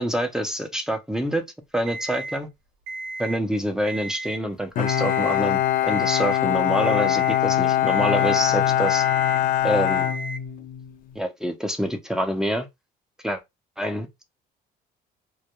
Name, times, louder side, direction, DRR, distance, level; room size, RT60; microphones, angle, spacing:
voice 1, 0.0-1.4 1.7-2.5 3.2-9.0 9.6-10.1 11.2-12.7 13.2-13.4 13.8-14.2, right 1 dB, 5° right, 0.5 m, -26 dB
Alarm, 1.9-2.4 2.9-3.4 3.8-4.4 4.9-5.4 5.9-6.4 6.9-7.4 7.9-8.4 8.9-9.4 9.9-10.4, right 2 dB, 80° right, 0.5 m, -34 dB
Bowed string instrument, 4.8-10.9, left 12 dB, 55° left, 0.4 m, -22 dB
2.2 x 2.1 x 2.8 m
cardioid pair, 110°, 17 cm